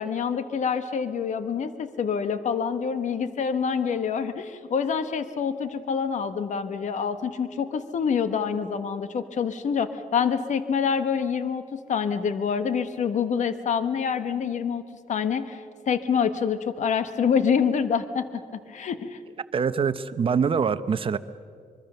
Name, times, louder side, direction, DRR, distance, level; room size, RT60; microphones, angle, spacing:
voice 1, 0.0-14.8 15.1-18.4 18.7-19.2, left 6 dB, 55° left, 11 dB, 1.2 m, -26 dB
voice 2, 19.5-21.2, right 6 dB, 40° right, 13 dB, 0.8 m, -24 dB
24.5 x 23.0 x 6.8 m, 2.3 s
cardioid pair, 140°, 14 cm